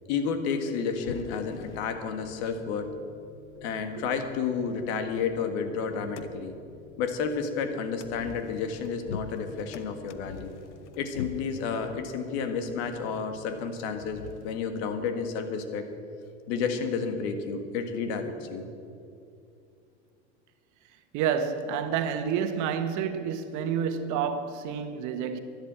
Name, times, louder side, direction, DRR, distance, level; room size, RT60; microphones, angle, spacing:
voice 1, 0.1-2.9 3.6-6.6 7.0-10.5 11.0-15.9 16.5-18.7, left 5 dB, 65° left, 1.9 m, -31 dB
sound 1, 0.9-14.6, left 6 dB, 85° left, 0.8 m, -46 dB
voice 2, 21.1-25.4, right 7 dB, 55° right, 1.4 m, -29 dB
12.0 x 11.5 x 7.6 m
hypercardioid pair, 85°, 35 cm